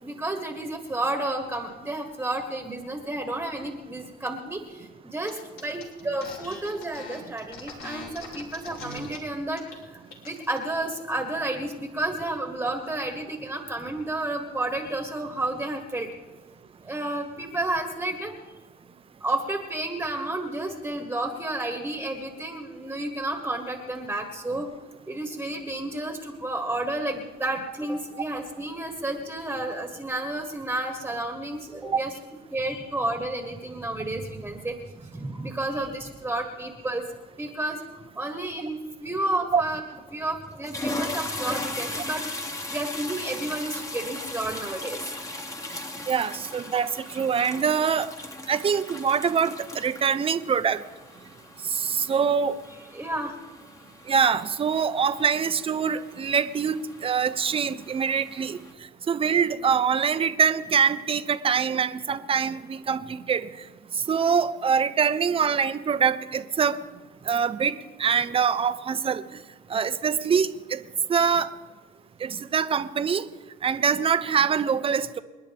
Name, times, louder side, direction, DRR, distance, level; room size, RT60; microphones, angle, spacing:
voice 1, 0.0-16.1 16.8-18.3 19.2-24.7 25.1-32.2 32.5-34.8 35.0-37.1 37.3-37.8 38.1-39.8 40.1-42.2 42.7-45.0 52.9-53.4 59.5-59.7, right 2 dB, 10° right, 3 dB, 1.6 m, -31 dB
sound 1, 5.3-5.4 5.6-9.2 9.5-9.8 10.1-10.6, left 3 dB, 65° left, 3.3 m, -41 dB
sound 2, 39.9-40.1 40.5-58.7, left 2 dB, 20° left, 1.6 m, -38 dB
voice 2, 46.1-48.1 48.5-50.8 51.7-52.6 54.1-58.6 59.1-63.5 64.1-66.8 67.3-69.2 69.7-70.8 71.1-71.5 72.2-73.2 73.6-75.2, right 6 dB, 35° right, 12 dB, 0.8 m, -24 dB
28.0 x 10.5 x 3.5 m, 1.3 s
cardioid pair, 110°, 17 cm